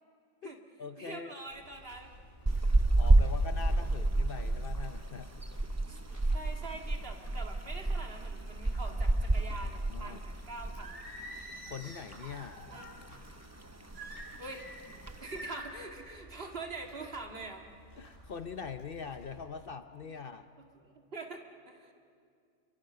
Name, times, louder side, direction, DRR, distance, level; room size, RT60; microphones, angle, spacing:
voice 1, 0.4-1.3 2.9-5.3 8.9-9.0 9.3-9.4 9.9-10.2 11.7-12.6 18.0-20.5, left 6 dB, 55° left, 9 dB, 0.8 m, -43 dB
voice 2, 1.0-2.2 3.4-3.9 5.9-11.0 12.7-13.0 14.4-14.7 15.2-17.7 20.0-20.2 20.6-21.9, right 3 dB, 50° right, 2 dB, 2.2 m, -45 dB
sound 1, 1.5-19.4, equal, 85° left, 7.3 m, -55 dB
sound 2, 2.5-11.0 11.2-11.4 11.8-12.7 13.0-13.4 13.6-13.7 13.9-14.4 14.9-15.4, right 2 dB, 15° right, 0.6 m, -29 dB
Singing, 10.8-13.0 13.9-14.8 15.3-15.8, right 1 dB, 75° right, 4.1 m, -46 dB
30.0 x 23.0 x 6.7 m, 2.4 s
omnidirectional pair, 1.3 m